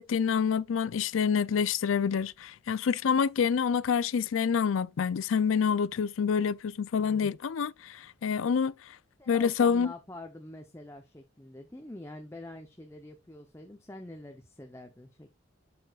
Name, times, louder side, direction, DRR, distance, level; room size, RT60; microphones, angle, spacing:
voice 1, 0.0-9.0 9.3-9.9, left 6 dB, 85° left, 0.4 m, -27 dB
voice 2, 9.2-15.3, left 1 dB, 15° left, 0.7 m, -45 dB
7.8 x 6.9 x 2.4 m
head